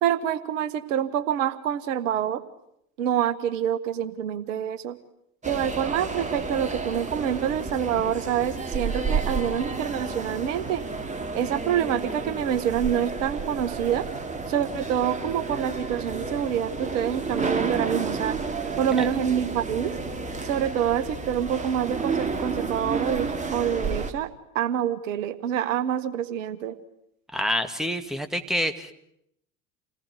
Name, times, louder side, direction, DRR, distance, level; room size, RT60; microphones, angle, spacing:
voice 1, 0.0-2.4 3.0-5.0 5.4-10.8 11.3-14.0 14.5-18.4 18.8-19.9 20.4-24.3 24.5-26.8, right 9 dB, 60° right, 12 dB, 1.7 m, -26 dB
sound 1, 5.4-24.1, right 4 dB, 15° right, 3.2 m, -31 dB
voice 2, 27.3-28.9, equal, ahead, 9 dB, 2.1 m, -27 dB
29.0 x 19.5 x 9.5 m, 0.77 s
figure-of-eight pair, 75°, 43 cm